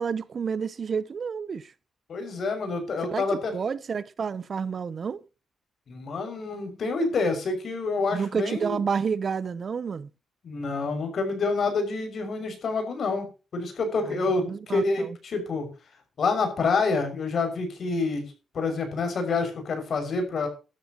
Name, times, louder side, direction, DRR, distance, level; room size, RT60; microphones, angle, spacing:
voice 1, 0.0-1.7 3.1-5.2 8.1-10.1 14.0-15.2, right 6 dB, 45° right, 0.8 m, -30 dB
voice 2, 2.1-3.5 5.9-8.8 10.4-15.7 16.2-18.2 18.5-20.5, left 3 dB, 55° left, 6.2 m, -27 dB
16.5 x 13.0 x 3.0 m
cardioid pair, 120°, 0 cm